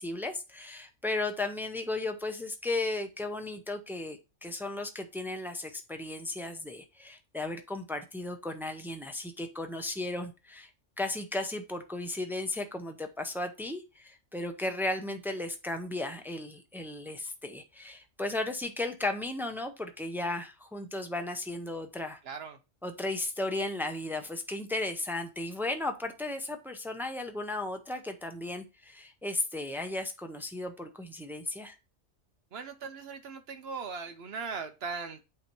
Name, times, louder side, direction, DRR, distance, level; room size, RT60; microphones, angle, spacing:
voice 1, 0.0-10.7 11.0-22.2 22.8-31.7, left 2 dB, 5° right, 0.3 m, -35 dB
voice 2, 22.2-22.6 32.5-35.2, right 5 dB, 60° right, 0.9 m, -39 dB
8.5 x 2.9 x 4.4 m
omnidirectional pair, 1.3 m